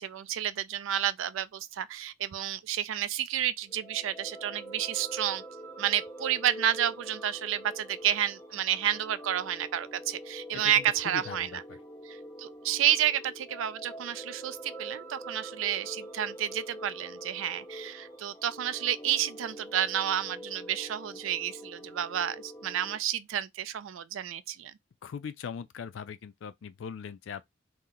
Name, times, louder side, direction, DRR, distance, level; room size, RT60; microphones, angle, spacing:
voice 1, 0.0-5.4 5.8-11.6 12.1-24.7, right 10 dB, 85° right, 0.3 m, -30 dB
sound 1, 3.7-23.0, right 1 dB, 10° left, 0.6 m, -45 dB
voice 2, 10.5-11.8 25.0-27.4, left 6 dB, 80° left, 0.4 m, -40 dB
2.8 x 2.0 x 3.6 m
head